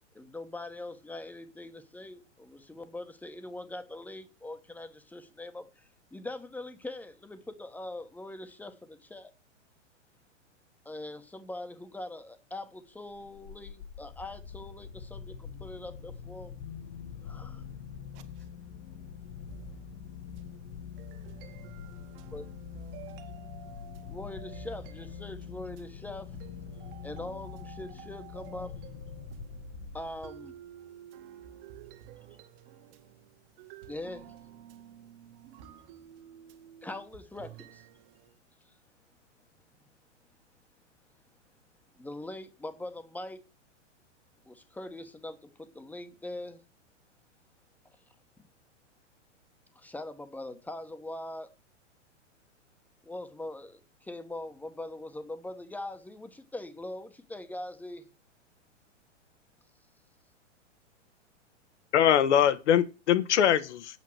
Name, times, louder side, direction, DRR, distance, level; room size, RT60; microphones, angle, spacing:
voice 1, 0.1-9.3 10.8-16.5 17.2-17.6 22.3-22.4 24.1-26.4 27.0-28.7 29.9-30.5 33.9-34.4 36.8-37.8 41.9-43.4 44.4-46.6 49.7-51.5 53.0-58.1, left 1 dB, 5° left, 1.2 m, -42 dB
sound 1, 13.1-30.5, left 7 dB, 45° left, 1.4 m, -44 dB
voice 2, 21.0-22.4 22.8-24.5 26.4-27.1 27.7-27.8 28.4-28.6 29.2-29.4 30.2-33.2 33.6-34.4 34.6-36.9 38.0-38.3, right 10 dB, 45° right, 1.9 m, -50 dB
voice 3, 61.9-64.0, left 10 dB, 65° left, 1.4 m, -23 dB
8.8 x 5.9 x 7.9 m
hypercardioid pair, 130°, 37 cm